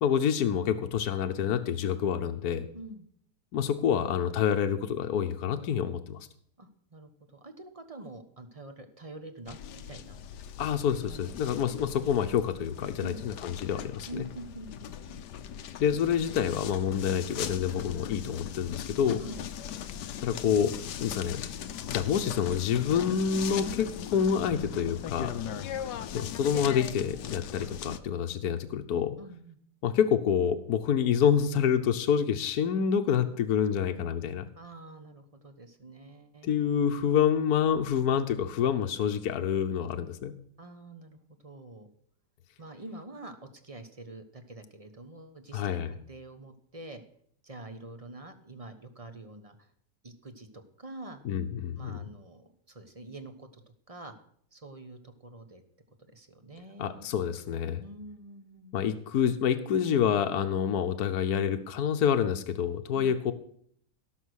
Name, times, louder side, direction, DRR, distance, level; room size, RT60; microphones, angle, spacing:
voice 1, 0.0-2.7 3.5-6.2 10.6-14.2 15.8-19.2 20.2-20.7 21.0-21.4 21.9-25.3 26.1-29.2 29.8-34.4 36.4-40.3 45.5-45.9 51.2-52.0 56.8-57.8 58.7-63.3, left 8 dB, 70° left, 6 dB, 1.3 m, -27 dB
voice 2, 2.7-3.1 6.6-10.3 11.1-11.3 13.0-13.3 14.1-15.2 19.2-19.5 25.4-25.7 29.2-29.6 34.5-36.6 40.6-41.9 42.6-47.0 47.4-49.6 50.0-51.2 51.8-53.6 53.9-54.1 54.5-55.6 56.1-57.1 57.8-58.7 62.9-63.1, right 2 dB, 25° right, 7 dB, 1.1 m, -46 dB
sound 1, 9.5-28.0, left 9 dB, 85° left, 1.4 m, -39 dB
17.0 x 6.5 x 6.4 m, 0.63 s
omnidirectional pair, 1.8 m